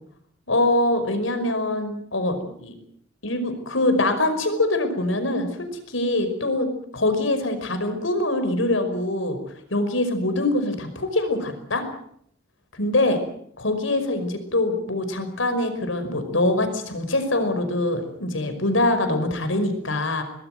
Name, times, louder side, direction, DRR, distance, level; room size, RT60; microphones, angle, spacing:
voice 1, 0.5-2.7 3.2-9.4 9.7-11.8 12.8-13.2 13.6-20.2, left 2 dB, 85° left, 8 dB, 5.4 m, -24 dB
23.0 x 20.5 x 7.9 m, 0.68 s
head